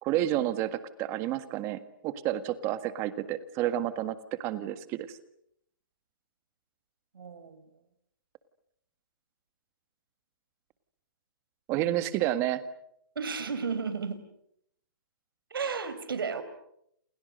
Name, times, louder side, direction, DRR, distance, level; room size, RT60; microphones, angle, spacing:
voice 1, 0.0-5.2 11.7-12.6, right 13 dB, 20° right, 12 dB, 1.7 m, -30 dB
voice 2, 7.1-7.6 13.1-14.2 15.5-16.4, right 5 dB, 85° right, 12 dB, 5.0 m, -33 dB
29.0 x 28.5 x 6.7 m, 0.75 s
hypercardioid pair, 160°, 11 cm